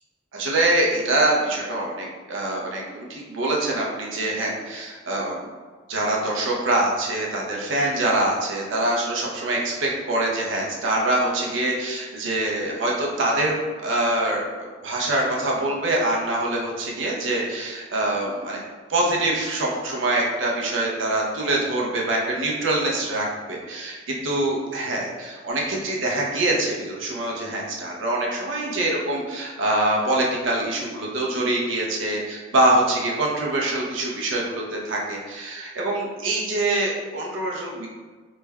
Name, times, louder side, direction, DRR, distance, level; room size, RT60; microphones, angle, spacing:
voice 1, 0.3-5.4 5.9-14.4 14.8-18.6 18.9-37.9, right 1 dB, 70° right, -2 dB, 0.7 m, -24 dB
3.2 x 2.2 x 3.4 m, 1.4 s
head